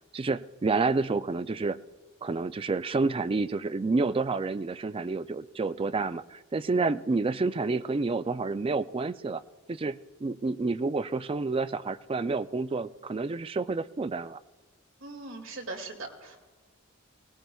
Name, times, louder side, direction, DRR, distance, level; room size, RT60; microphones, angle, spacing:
voice 1, 0.1-1.8 2.2-9.4 9.7-14.4, right 3 dB, 25° right, 12 dB, 0.3 m, -29 dB
voice 2, 15.0-16.4, right 2 dB, 65° right, 2 dB, 2.2 m, -40 dB
23.5 x 18.5 x 2.3 m, 1.3 s
head